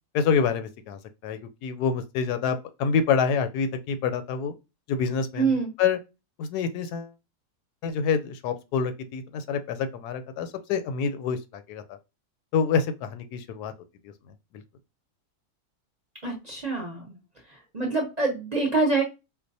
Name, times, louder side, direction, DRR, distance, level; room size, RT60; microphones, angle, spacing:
voice 1, 0.1-4.5 4.9-5.5 5.8-6.0 6.4-7.1 7.8-11.8 12.5-13.7, left 6 dB, 90° left, 1.1 m, -27 dB
voice 2, 5.3-5.7 16.2-17.1 17.5-19.0, right 3 dB, 40° right, 0.6 m, -26 dB
4.5 x 2.2 x 2.6 m
omnidirectional pair, 1.6 m